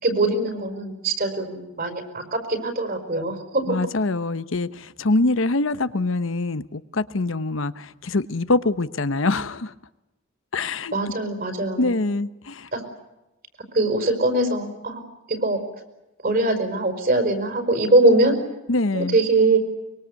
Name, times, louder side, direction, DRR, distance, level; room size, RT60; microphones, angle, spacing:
voice 1, 0.0-3.8 10.9-12.0 12.7-12.8 13.7-15.0 15.3-15.6 16.2-18.4 18.9-19.6, right 2 dB, 45° right, 5.3 m, -22 dB
voice 2, 3.7-9.7 10.5-10.9 11.8-12.7 18.7-19.2, left 2 dB, 70° left, 1.0 m, -24 dB
24.5 x 22.5 x 8.4 m
head